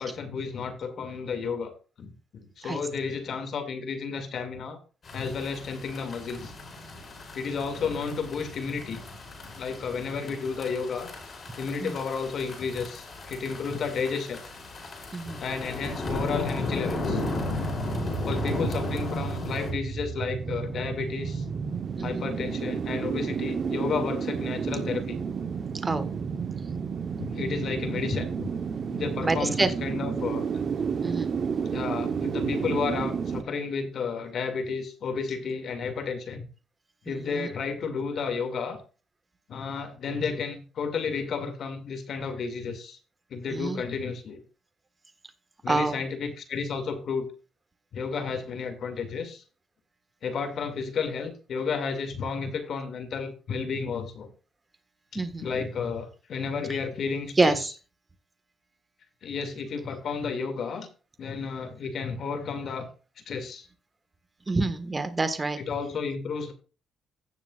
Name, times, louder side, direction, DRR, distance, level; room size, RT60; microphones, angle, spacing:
voice 1, 0.0-4.8 5.1-6.5 7.3-9.0 9.6-11.1 11.6-14.4 15.4-17.6 18.2-21.5 22.0-25.2 27.2-28.5 28.9-30.5 31.7-36.5 37.0-38.8 39.5-43.0 43.3-44.4 45.6-47.3 47.9-49.4 50.2-54.3 55.1-57.7 59.2-60.9 61.2-62.9 63.3-63.7 65.7-66.5, left 5 dB, 60° left, 7 dB, 2.3 m, -32 dB
sound 1, 5.0-19.7, left 2 dB, 45° left, 4.9 m, -35 dB
voice 2, 15.1-15.4 21.9-22.2 25.8-26.1 29.2-29.7 31.0-31.3 37.1-37.5 43.5-43.8 45.7-46.0 55.1-55.5 56.7-56.8 57.4-57.7 64.5-65.6, right 3 dB, 25° right, 10 dB, 1.5 m, -27 dB
sound 2, 17.7-33.4, right 6 dB, 50° right, 0.9 m, -31 dB
16.0 x 7.1 x 2.4 m, 0.34 s
cardioid pair, 90°, 0 cm